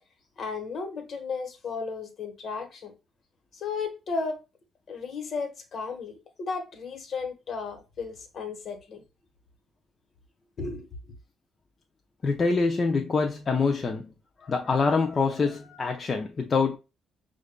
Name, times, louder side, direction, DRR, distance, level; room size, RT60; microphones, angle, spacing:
voice 1, 0.4-2.9 3.5-4.4 4.9-9.0 10.6-10.9, left 4 dB, 60° left, 1.2 m, -34 dB
voice 2, 12.2-14.1 14.4-16.8, left 4 dB, 40° left, 0.6 m, -25 dB
6.5 x 2.5 x 2.2 m
cardioid pair, 90°, 0 cm